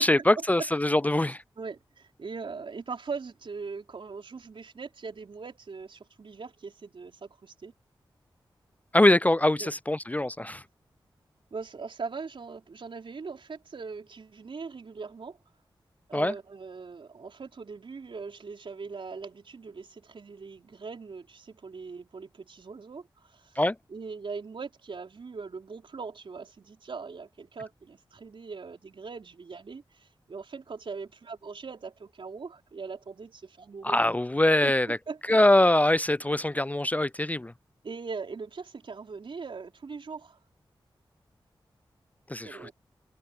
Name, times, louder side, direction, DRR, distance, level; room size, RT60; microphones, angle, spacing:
voice 1, 0.0-1.4 8.9-10.6 16.1-16.3 23.6-23.7 33.8-35.0 35.3-37.5 42.3-42.5, left 1 dB, 15° left, 0.4 m, -23 dB
voice 2, 1.6-7.7 9.6-9.7 11.5-15.4 16.1-23.6 23.9-34.0 34.6-35.4 37.8-40.4 42.4-42.7, right 4 dB, 70° right, 4.6 m, -40 dB
cardioid pair, 45°, 9 cm